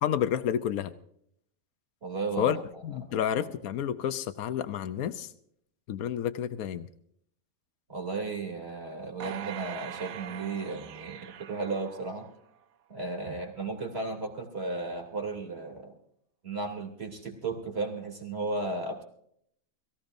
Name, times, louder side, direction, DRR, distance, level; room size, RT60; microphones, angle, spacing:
voice 1, 0.0-0.9 2.4-2.6 2.8-5.3 5.9-6.9, left 9 dB, 90° left, 11 dB, 1.2 m, -30 dB
voice 2, 2.0-2.6 3.1-3.5 7.9-12.3 12.9-16.0 16.4-19.0, right 3 dB, 45° right, 2 dB, 3.3 m, -35 dB
sound 1, 9.2-12.6 13.1-13.2, right 9 dB, 75° right, 1.2 m, -42 dB
23.0 x 15.5 x 2.6 m, 0.69 s
omnidirectional pair, 1.5 m